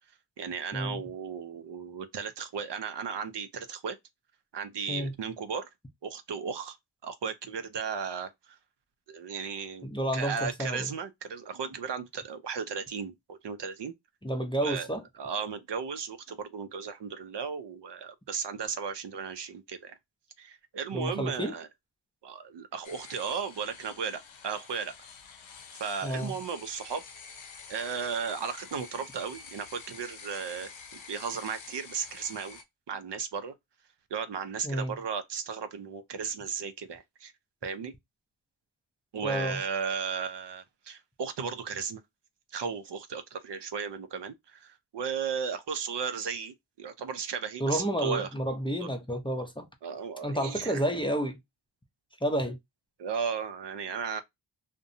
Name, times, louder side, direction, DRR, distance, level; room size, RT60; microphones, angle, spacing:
voice 1, 0.4-4.0 4.5-5.7 6.0-6.8 7.0-8.6 9.1-9.9 10.1-13.9 14.6-14.9 15.2-20.0 20.4-21.7 22.2-24.9 25.8-27.0 27.7-32.6 32.9-33.5 34.1-37.3 37.6-37.9 39.1-42.0 42.5-48.3 48.8-48.9 49.8-50.8 53.0-54.2, right 6 dB, 65° right, 0.5 m, -35 dB
voice 2, 9.8-10.9 14.2-15.0 20.9-21.5 26.0-26.3 34.6-34.9 39.2-39.6 47.6-49.7 50.2-51.4 52.2-52.6, right 1 dB, 10° left, 0.5 m, -30 dB
sound 1, 22.8-32.6, left 5 dB, 85° left, 0.7 m, -48 dB
2.6 x 2.1 x 2.6 m
cardioid pair, 55°, 46 cm